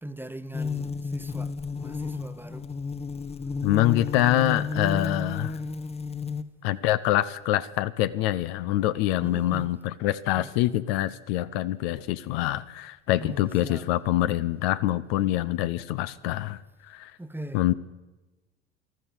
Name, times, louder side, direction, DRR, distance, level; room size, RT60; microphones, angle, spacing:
voice 1, 0.0-2.7 9.2-9.7 10.4-10.5 13.2-13.9 17.2-17.6, right 1 dB, 5° right, 0.9 m, -40 dB
sound 1, 0.5-6.4, left 4 dB, 20° left, 0.8 m, -32 dB
voice 2, 3.6-5.6 6.6-16.6 16.9-17.1 17.5-17.7, left 15 dB, 65° left, 0.6 m, -25 dB
14.0 x 12.5 x 7.1 m
hypercardioid pair, 65°, 33 cm